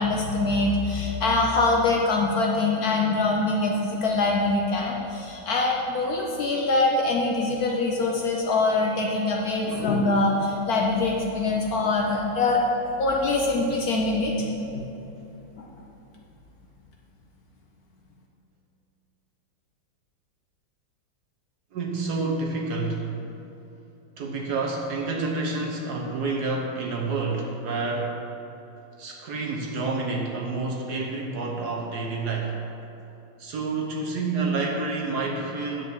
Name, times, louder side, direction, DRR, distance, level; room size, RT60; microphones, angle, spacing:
voice 1, 0.0-12.6 13.0-14.9 15.6-15.7, left 3 dB, 60° left, -1 dB, 1.1 m, -24 dB
voice 2, 21.7-23.1 24.2-28.1 29.0-32.6 33.4-35.8, right 3 dB, 60° right, 0 dB, 1.3 m, -28 dB
9.5 x 4.7 x 6.8 m, 2.9 s
omnidirectional pair, 2.2 m